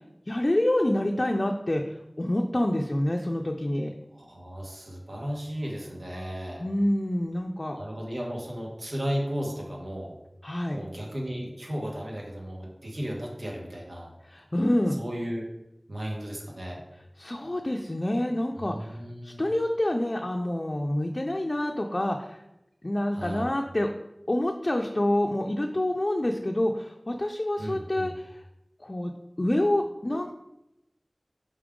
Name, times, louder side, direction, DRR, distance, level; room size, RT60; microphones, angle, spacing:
voice 1, 0.3-3.9 6.6-7.8 10.4-10.8 14.2-15.0 17.2-19.0 19.2-22.4 22.8-23.9 24.3-28.4 28.8-29.1 29.4-30.4, left 1 dB, 50° left, 2 dB, 0.4 m, -27 dB
voice 2, 4.1-6.6 7.7-10.2 10.7-14.1 15.0-15.5 15.9-16.8 18.6-19.4 23.1-23.5 27.6-28.1, equal, 90° right, -2 dB, 1.2 m, -35 dB
5.3 x 4.9 x 3.6 m, 0.89 s
wide cardioid pair, 45°, 0 cm